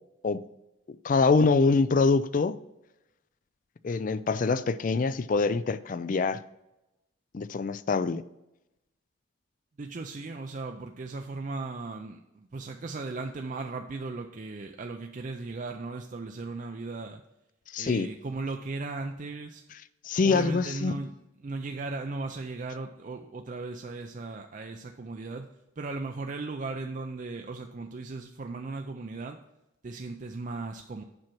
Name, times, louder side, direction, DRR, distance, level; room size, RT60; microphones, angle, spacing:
voice 1, 1.0-2.5 3.8-6.4 7.3-8.2 17.7-18.1 20.0-21.0, left 4 dB, 40° left, 15 dB, 0.3 m, -24 dB
voice 2, 9.8-17.2 17.8-19.6 20.2-25.5 25.8-29.4 29.8-31.0, right 3 dB, 40° right, 4 dB, 0.4 m, -37 dB
7.7 x 5.8 x 4.5 m, 0.91 s
head